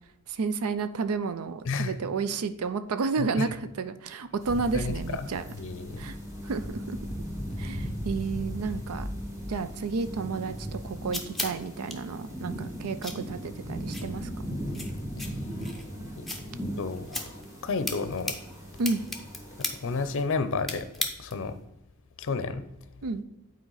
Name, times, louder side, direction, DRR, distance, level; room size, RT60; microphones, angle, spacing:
voice 1, 0.3-5.4 6.0-6.2 6.4-7.0 7.6-9.1 9.5-14.3 18.8-19.0 23.0-23.2, right 4 dB, 75° right, 11 dB, 0.5 m, -31 dB
voice 2, 1.6-1.9 3.2-3.5 4.7-6.1 16.2-16.3 16.8-18.4 19.8-20.9 21.2-21.6 22.2-22.6, left 4 dB, 60° left, 11 dB, 0.6 m, -31 dB
sound 1, 4.4-20.2, equal, 15° right, 1.9 m, -37 dB
sound 2, 10.5-21.6, left 2 dB, ahead, 0.8 m, -39 dB
8.8 x 4.5 x 3.9 m, 0.89 s
head